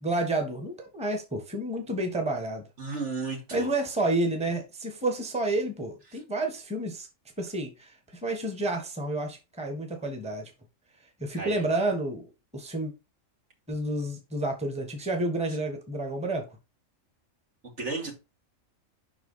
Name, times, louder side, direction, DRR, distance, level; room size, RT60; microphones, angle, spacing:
voice 1, 0.0-2.6 3.5-7.1 7.4-10.5 11.2-12.3 12.5-12.9 13.7-16.5, right 2 dB, 5° right, 1.3 m, -30 dB
voice 2, 2.8-3.7 11.3-11.7 17.6-18.2, right 4 dB, 65° right, 2.8 m, -34 dB
5.8 x 4.7 x 5.5 m
omnidirectional pair, 1.3 m